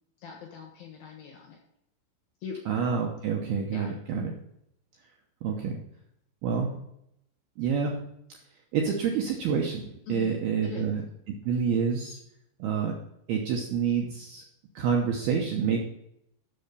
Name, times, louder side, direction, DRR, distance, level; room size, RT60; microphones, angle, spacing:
voice 1, 0.2-1.6 2.4-2.6 3.7-3.9 10.1-10.4 10.6-10.9, left 6 dB, 65° left, 1 dB, 2.5 m, -41 dB
voice 2, 2.7-4.3 5.4-5.8 6.4-6.8 7.6-8.0 8.7-11.0 11.4-12.2 12.6-12.9 13.3-14.4 14.8-15.8, right 6 dB, 75° right, 0 dB, 2.3 m, -27 dB
7.7 x 6.4 x 6.7 m, 0.77 s
omnidirectional pair, 5.7 m